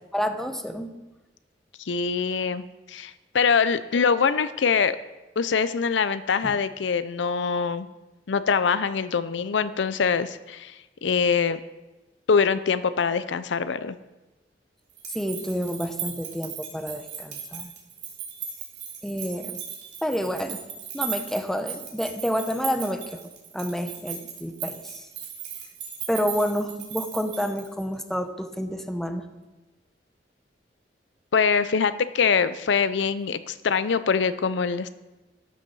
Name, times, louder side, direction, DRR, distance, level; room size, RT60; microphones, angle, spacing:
voice 1, 0.1-0.9 6.4-6.5 15.1-17.7 19.0-19.6 20.0-20.6 20.9-23.2 23.5-25.0 26.1-29.3, equal, ahead, 7 dB, 0.8 m, -29 dB
voice 2, 1.8-2.6 2.9-5.0 5.4-7.9 8.3-11.6 12.3-14.0 31.3-34.9, left 6 dB, 80° left, 13 dB, 0.5 m, -24 dB
sound 1, 14.9-27.9, right 7 dB, 70° right, 3.0 m, -37 dB
13.0 x 6.7 x 6.2 m, 1.1 s
head